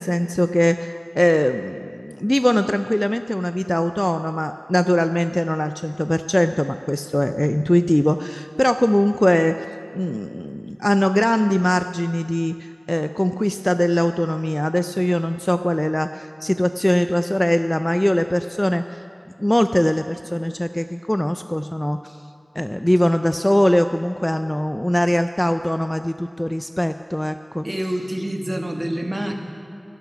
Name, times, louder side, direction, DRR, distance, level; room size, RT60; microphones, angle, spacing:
voice 1, 0.0-9.7 9.9-19.0 19.4-22.2 22.6-27.7, left 1 dB, 15° left, 9 dB, 0.3 m, -21 dB
voice 2, 27.6-29.3, right 1 dB, 25° right, 3 dB, 1.4 m, -26 dB
11.5 x 11.5 x 5.9 m, 2.5 s
wide cardioid pair, 50°, 0 cm